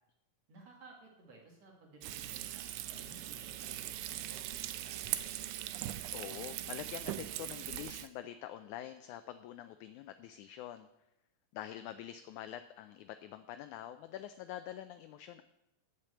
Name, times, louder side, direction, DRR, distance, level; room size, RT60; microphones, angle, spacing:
voice 1, 0.5-5.0, right 2 dB, 55° right, 0 dB, 3.0 m, -56 dB
Frying (food), 2.0-8.1, right 13 dB, 80° right, 1.9 m, -40 dB
voice 2, 6.1-10.9 11.5-15.4, left 12 dB, 80° left, 10 dB, 1.8 m, -46 dB
9.1 x 8.3 x 7.7 m, 0.89 s
omnidirectional pair, 3.8 m